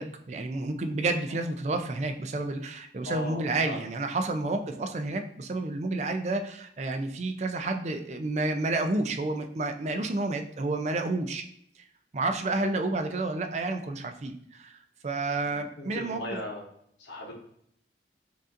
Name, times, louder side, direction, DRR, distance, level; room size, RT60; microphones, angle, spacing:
voice 1, 0.0-11.4 12.1-16.2, right 2 dB, 40° right, 6 dB, 0.4 m, -30 dB
voice 2, 3.0-3.8 4.6-4.7 10.1-10.2 12.5-12.6 15.4-16.6 17.0-17.3, left 1 dB, 80° left, -2 dB, 0.8 m, -38 dB
6.6 x 2.5 x 2.5 m, 0.69 s
head